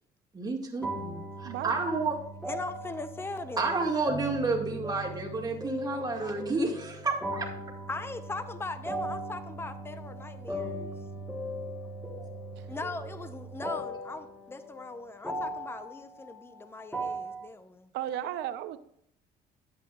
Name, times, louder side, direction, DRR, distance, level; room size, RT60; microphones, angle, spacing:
voice 1, 0.3-2.1 3.6-7.5 10.5-10.9 12.2-12.3, right 3 dB, 25° right, 1 dB, 2.1 m, -31 dB
sound 1, 0.8-17.5, right 1 dB, ahead, 1.3 m, -39 dB
voice 2, 2.5-3.9 6.2-6.4 7.9-10.9 12.7-17.9, left 3 dB, 15° left, 10 dB, 0.7 m, -40 dB
voice 3, 17.9-18.8, right 11 dB, 85° right, 11 dB, 0.7 m, -34 dB
10.5 x 8.4 x 2.4 m, 0.69 s
cardioid pair, 110°, 17 cm